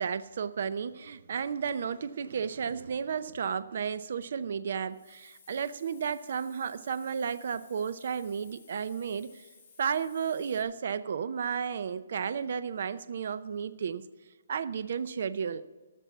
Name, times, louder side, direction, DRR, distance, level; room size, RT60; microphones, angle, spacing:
voice 1, 0.0-9.5 9.8-14.0 14.5-15.6, right 7 dB, 55° right, 13 dB, 0.5 m, -33 dB
Hiss, 4.9-10.6, left 5 dB, 25° left, 3.3 m, -58 dB
14.0 x 6.9 x 7.1 m, 1.3 s
hypercardioid pair, 170°, 0 cm